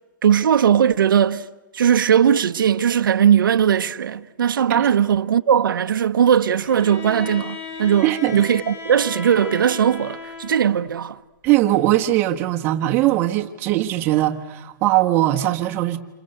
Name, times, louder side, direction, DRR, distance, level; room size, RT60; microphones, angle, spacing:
voice 1, 0.2-1.5 1.7-11.2, right 8 dB, 90° right, 1.1 m, -18 dB
Bowed string instrument, 6.6-10.9, left 3 dB, 45° left, 5.3 m, -35 dB
voice 2, 8.0-8.4 11.4-16.0, right 15 dB, 20° right, 1.4 m, -20 dB
28.5 x 26.5 x 7.9 m
hypercardioid pair, 170°, 11 cm